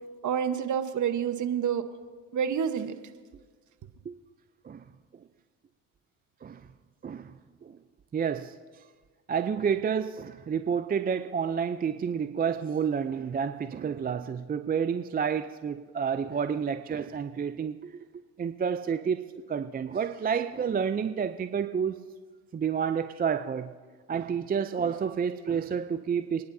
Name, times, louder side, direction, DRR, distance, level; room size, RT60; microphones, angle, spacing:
voice 1, 0.2-1.8 2.3-2.9, right 8 dB, 45° right, 9 dB, 1.2 m, -28 dB
voice 2, 7.0-7.3 7.6-7.8 8.1-8.5 9.3-18.0 18.4-22.0 22.5-23.7 24.1-26.4, right 7 dB, 20° right, 10 dB, 0.5 m, -30 dB
28.0 x 10.5 x 2.7 m, 1.5 s
supercardioid pair, 75°, 41 cm